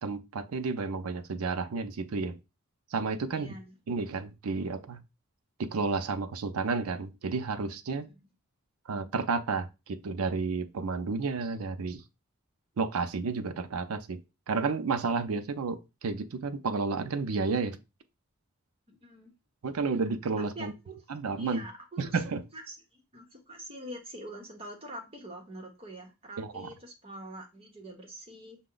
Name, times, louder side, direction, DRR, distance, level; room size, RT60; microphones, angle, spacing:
voice 1, 0.0-2.4 2.9-3.5 3.9-5.0 5.6-8.1 8.9-12.0 12.8-14.2 14.5-17.8 19.6-20.7 21.1-21.6 22.0-22.4 26.4-26.7, right 4 dB, 80° right, 0.5 m, -31 dB
voice 2, 3.3-3.7 8.1-8.2 18.9-19.3 20.5-21.0 21.4-22.2 22.5-28.6, right 1 dB, 25° right, 1.0 m, -45 dB
5.8 x 2.2 x 3.8 m
head